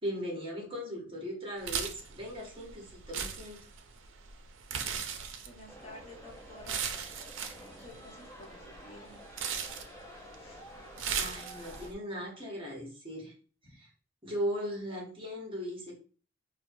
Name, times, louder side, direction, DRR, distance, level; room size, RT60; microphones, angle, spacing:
voice 1, 0.0-3.6 11.1-13.3 13.7-13.9 14.2-16.0, equal, 25° right, -2 dB, 1.1 m, -38 dB
sound 1, 1.6-11.9, right 7 dB, 75° right, 0.5 m, -39 dB
voice 2, 5.4-6.8 7.8-9.2 10.4-10.6, left 1 dB, 35° left, -2 dB, 1.1 m, -51 dB
sound 2, 5.7-11.9, equal, 15° left, 0.6 m, -50 dB
4.5 x 2.3 x 2.6 m, 0.40 s
head